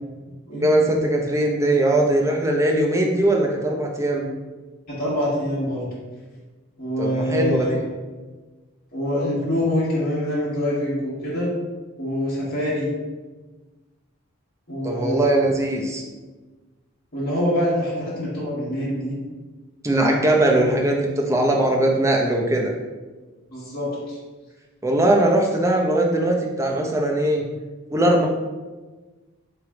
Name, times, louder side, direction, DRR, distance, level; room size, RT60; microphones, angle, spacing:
voice 1, 0.5-4.3 7.0-7.8 14.8-16.0 19.8-22.7 24.8-27.5 27.9-28.3, right 1 dB, 15° right, 0 dB, 0.5 m, -20 dB
voice 2, 4.9-5.8 6.8-7.7 8.9-11.5 12.0-12.9 14.7-15.2 17.1-19.2 23.5-24.2, equal, 45° left, -9 dB, 1.4 m, -25 dB
3.2 x 3.0 x 4.7 m, 1.3 s
head